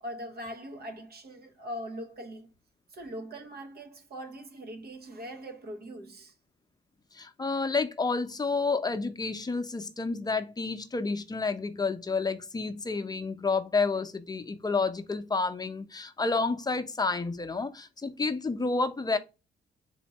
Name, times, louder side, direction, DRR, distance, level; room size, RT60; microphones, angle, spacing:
voice 1, 0.0-2.5 2.9-6.3, equal, 50° right, 1.0 m, -41 dB
voice 2, 7.1-19.2, left 4 dB, 20° left, 0.7 m, -30 dB
4.3 x 2.7 x 2.9 m
cardioid pair, 90°, 20 cm